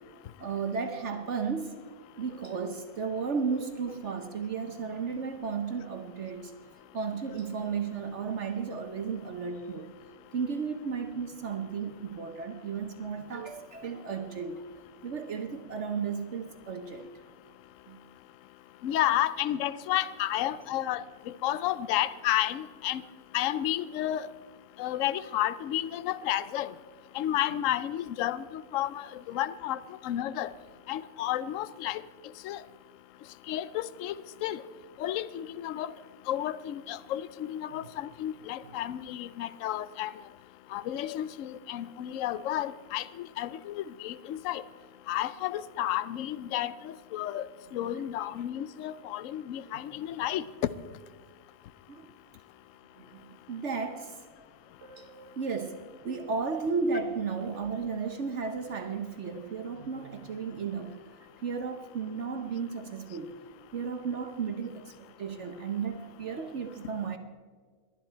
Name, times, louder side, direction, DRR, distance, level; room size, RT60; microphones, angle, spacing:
voice 1, 0.4-1.8 2.2-6.5 6.9-9.9 10.3-14.6 15.0-17.1 17.9-18.0 37.7-37.9 38.6-38.7 49.7-49.8 51.9-52.1 52.9-54.2 54.8-61.0 61.4-63.4 63.7-67.2, right 5 dB, 60° right, 7 dB, 1.1 m, -34 dB
voice 2, 18.8-23.0 23.3-24.3 24.8-26.7 27.1-30.5 30.9-32.0 32.4-32.6 33.5-34.1 34.4-34.6 35.0-35.9 36.3-40.1 40.7-44.6 45.1-47.5 47.7-50.4, left 12 dB, 70° left, 16 dB, 0.9 m, -31 dB
19.5 x 11.5 x 4.5 m, 1.5 s
omnidirectional pair, 1.5 m